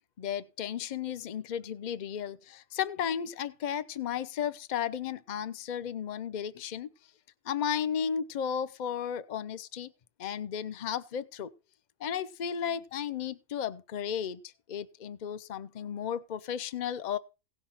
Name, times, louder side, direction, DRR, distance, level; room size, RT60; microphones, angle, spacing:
voice 1, 0.2-6.9 7.4-9.9 10.2-11.5 12.0-14.4 14.7-17.2, left 8 dB, 40° left, 0.7 m, -34 dB
17.0 x 6.0 x 5.7 m
omnidirectional pair, 1.5 m